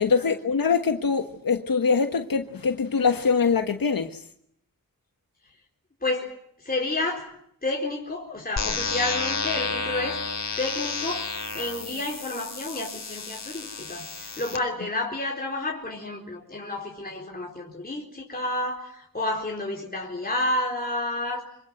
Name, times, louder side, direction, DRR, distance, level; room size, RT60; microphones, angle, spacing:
voice 1, 0.0-4.2, left 5 dB, 75° left, 1.6 m, -23 dB
voice 2, 6.0-7.3 7.6-10.2 10.6-21.4, left 2 dB, 25° left, 4.2 m, -30 dB
sound 1, 8.6-14.6, left 4 dB, 50° left, 4.4 m, -31 dB
26.5 x 25.5 x 7.8 m
wide cardioid pair, 100°, 34 cm